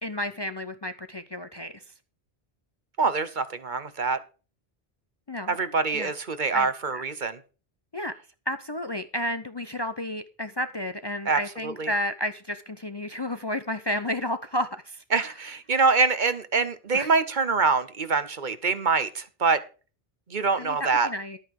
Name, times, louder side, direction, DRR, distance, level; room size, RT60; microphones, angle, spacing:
voice 1, 0.0-1.7 5.3-5.6 5.9-6.1 6.5-6.7 6.9-7.0 7.9-8.1 8.5-15.0 16.9-17.1 20.6-21.4, left 1 dB, 30° left, 10 dB, 0.6 m, -31 dB
voice 2, 3.0-4.2 5.5-7.4 11.2-11.9 15.1-19.6 20.3-21.1, right 4 dB, 50° right, 13 dB, 1.1 m, -25 dB
11.5 x 8.9 x 4.9 m, 0.34 s
omnidirectional pair, 1.0 m